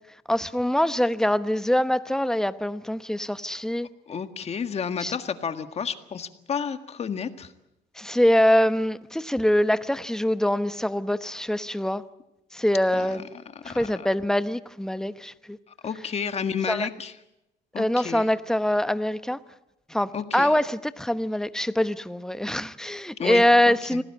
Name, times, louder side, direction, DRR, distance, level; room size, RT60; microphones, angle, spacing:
voice 1, 0.3-3.9 5.0-5.1 8.0-12.0 12.5-13.4 13.6-15.6 16.7-16.9 17.8-19.4 19.9-24.0, left 1 dB, 5° left, 0.9 m, -24 dB
voice 2, 4.1-7.5 12.9-13.1 13.6-14.1 15.8-17.1 17.7-18.3 20.1-20.5 23.2-24.0, left 6 dB, 40° left, 1.8 m, -31 dB
26.5 x 18.5 x 8.5 m
cardioid pair, 110°, 17 cm